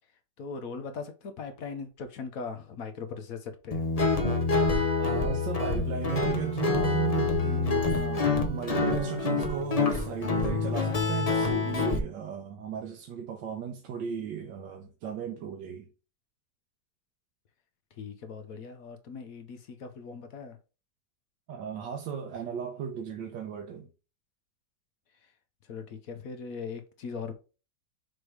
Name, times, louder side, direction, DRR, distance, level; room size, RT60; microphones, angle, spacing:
voice 1, 0.4-3.8 18.0-20.6 25.7-27.3, left 5 dB, 60° left, 1.1 m, -39 dB
Guitar, 3.7-12.0, left 4 dB, 40° left, 0.5 m, -27 dB
voice 2, 5.0-15.9 21.5-23.9, right 7 dB, 80° right, 1.5 m, -35 dB
6.2 x 3.2 x 4.7 m
omnidirectional pair, 1.9 m